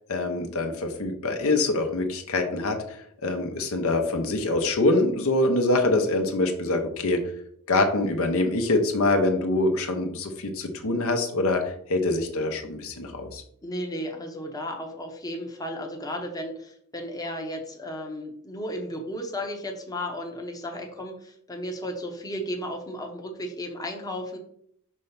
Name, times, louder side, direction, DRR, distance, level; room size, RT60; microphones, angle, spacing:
voice 1, 0.1-7.3 7.7-13.4, left 2 dB, 70° left, 5 dB, 0.9 m, -25 dB
voice 2, 13.6-24.4, equal, 15° left, 2 dB, 0.8 m, -34 dB
5.4 x 3.3 x 5.6 m, 0.67 s
head